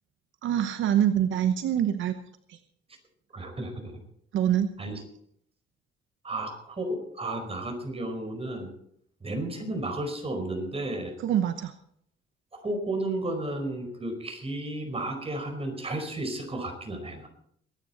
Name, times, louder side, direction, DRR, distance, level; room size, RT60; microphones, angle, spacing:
voice 1, 0.4-2.2 2.5-2.6 4.3-4.7 11.2-11.7, right 10 dB, 75° right, 9 dB, 0.9 m, -25 dB
voice 2, 3.3-4.0 4.8-5.0 6.2-8.7 9.2-11.1 12.5-17.3, right 1 dB, 30° right, 5 dB, 4.7 m, -33 dB
22.0 x 10.0 x 4.3 m, 0.68 s
cardioid pair, 90°, 20 cm